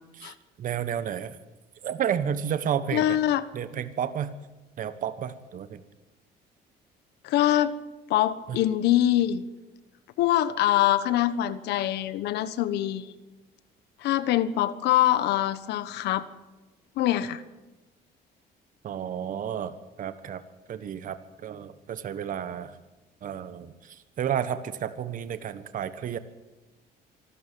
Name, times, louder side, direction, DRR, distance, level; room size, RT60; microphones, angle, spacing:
voice 1, 0.2-1.4 1.8-3.2 3.5-4.3 4.8-5.8 8.5-8.6 18.8-19.7 20.0-20.4 20.7-22.8 23.2-26.2, right 9 dB, 50° right, 11 dB, 1.3 m, -31 dB
voice 2, 2.9-3.4 7.2-7.7 8.1-9.4 10.2-13.1 14.0-16.2 17.0-17.4, left 13 dB, 80° left, 13 dB, 1.3 m, -24 dB
25.5 x 13.0 x 9.2 m, 1.1 s
cardioid pair, 110°, 17 cm